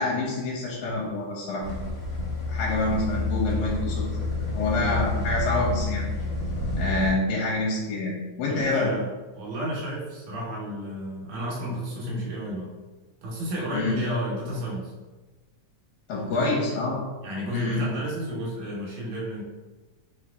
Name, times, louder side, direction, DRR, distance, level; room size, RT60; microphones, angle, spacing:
voice 1, 0.0-1.8 2.5-4.1 4.5-6.1 6.8-8.9 13.7-14.0 16.1-17.0 17.5-17.9, left 2 dB, 80° left, -4 dB, 2.1 m, -27 dB
sound 1, 1.6-7.1, left 2 dB, 55° left, 1.5 m, -29 dB
voice 2, 8.5-9.1 9.4-12.7 13.2-14.9 16.3-16.8 17.2-19.4, equal, 70° right, -4 dB, 2.2 m, -31 dB
4.7 x 3.0 x 3.4 m, 1.2 s
omnidirectional pair, 3.4 m